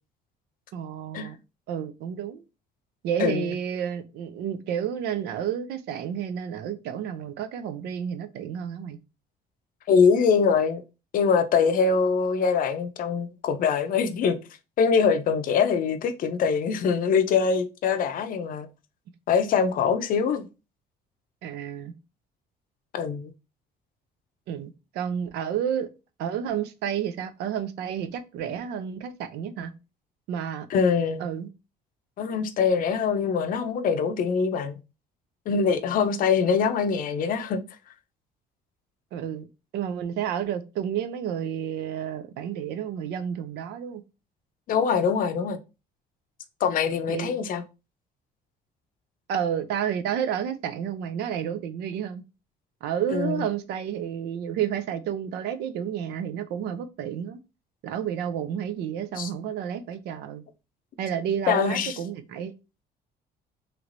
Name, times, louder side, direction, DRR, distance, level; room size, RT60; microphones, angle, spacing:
voice 1, 0.7-1.4 1.7-2.4 3.0-9.0 21.4-21.9 24.5-25.9 26.2-29.7 30.3-30.7 31.2-31.5 39.1-39.5 39.7-44.0 47.1-47.3 49.3-52.2 52.8-57.4 57.8-60.4 61.0-62.5, right 9 dB, 80° right, 0.5 m, -30 dB
voice 2, 3.2-3.5 9.9-10.8 11.1-14.4 14.8-18.7 19.3-20.5 22.9-23.3 30.7-31.3 32.2-34.7 35.5-37.6 44.7-45.6 46.6-47.6 53.1-53.4 59.2-59.3 61.5-62.0, left 6 dB, 55° left, 0.5 m, -23 dB
3.2 x 3.0 x 2.5 m
cardioid pair, 110°, 17 cm